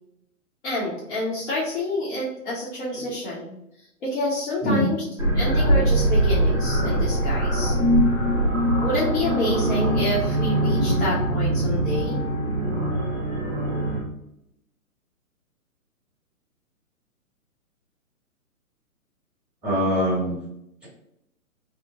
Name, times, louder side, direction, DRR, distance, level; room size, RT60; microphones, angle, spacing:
voice 1, 0.6-3.5 4.0-5.0 5.3-7.7 8.8-12.2, left 1 dB, 50° left, -7 dB, 1.0 m, -28 dB
voice 2, 4.6-4.9 19.6-20.4, equal, ahead, -7 dB, 1.0 m, -23 dB
sound 1, 5.2-14.0, right 1 dB, 20° right, 0.3 m, -22 dB
2.9 x 2.1 x 3.5 m, 0.82 s
figure-of-eight pair, 130°, 44 cm